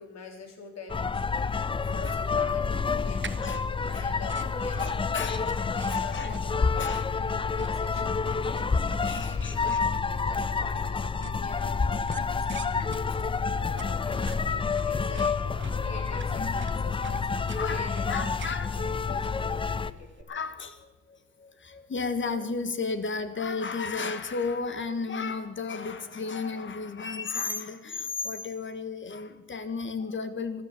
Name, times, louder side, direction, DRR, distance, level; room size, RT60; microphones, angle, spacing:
voice 1, 0.0-1.3 1.8-3.4 3.8-5.3 5.7-18.5 18.7-20.1, left 4 dB, 60° left, 3 dB, 3.8 m, -45 dB
sound 1, 0.9-19.9, left 5 dB, 15° left, 0.5 m, -29 dB
voice 2, 1.4-2.2 3.1-4.2 4.8-6.3 6.8-7.8 9.0-9.9 12.5-12.6 13.6-13.8 16.4-19.0 20.3-30.6, left 4 dB, 40° left, 11 dB, 1.5 m, -35 dB
sound 2, 3.2-20.2, right 6 dB, 40° right, 1.1 m, -48 dB
13.0 x 12.0 x 8.2 m, 1.1 s
cardioid pair, 90°, 30 cm